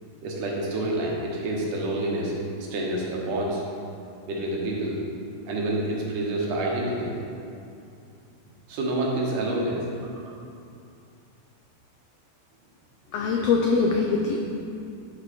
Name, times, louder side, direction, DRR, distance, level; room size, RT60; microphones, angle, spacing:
voice 1, 0.2-2.3 2.7-3.6 4.3-5.0 5.5-7.1 8.7-9.9, right 1 dB, 90° right, -2 dB, 2.8 m, -28 dB
voice 2, 13.1-14.4, left 4 dB, 90° left, 1 dB, 1.4 m, -22 dB
11.0 x 4.6 x 4.2 m, 2.5 s
omnidirectional pair, 3.5 m